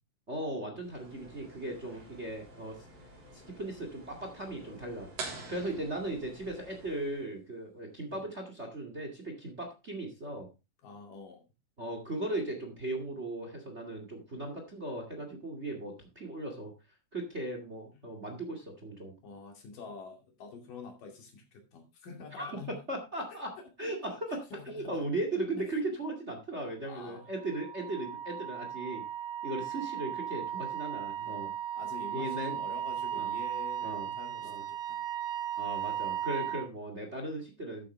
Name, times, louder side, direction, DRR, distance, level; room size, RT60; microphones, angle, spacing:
voice 1, 0.3-2.8 3.6-5.1 5.5-10.5 11.8-16.7 17.1-19.1 22.4-22.5 22.9-23.5 23.8-29.0 29.4-31.5 32.1-32.5 33.1-33.3 33.8-34.1 34.4-34.6 35.6-37.9, right 2 dB, 25° right, 4 dB, 1.9 m, -37 dB
sound 1, 0.7-7.3, equal, 40° right, 6.0 m, -54 dB
sound 2, 5.2-6.9, right 4 dB, 90° right, 4.9 m, -43 dB
voice 2, 10.8-11.4 18.0-18.1 19.2-22.8 23.1-23.4 23.8-25.1 25.6-25.8 26.9-27.3 31.2-35.0 36.4-36.6, left 4 dB, 80° left, 3 dB, 4.2 m, -48 dB
Wind instrument woodwind instrument, 27.2-36.7, right 10 dB, 70° right, 2.4 m, -36 dB
11.5 x 8.8 x 3.3 m, 0.27 s
omnidirectional pair, 3.8 m